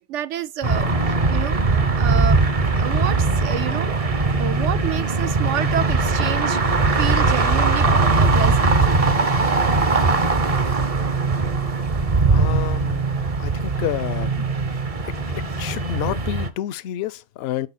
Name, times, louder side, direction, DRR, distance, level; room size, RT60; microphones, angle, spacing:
voice 1, 0.0-2.4 2.7-4.0 4.4-8.9 11.3-12.5, right 10 dB, 70° right, 1.0 m, -30 dB
sound 1, 0.6-16.5, right 3 dB, 35° right, 0.7 m, -20 dB
voice 2, 12.2-13.1 13.4-14.5 15.0-15.1 15.6-17.7, left 11 dB, 65° left, 0.7 m, -29 dB
10.5 x 4.4 x 4.2 m
omnidirectional pair, 1.3 m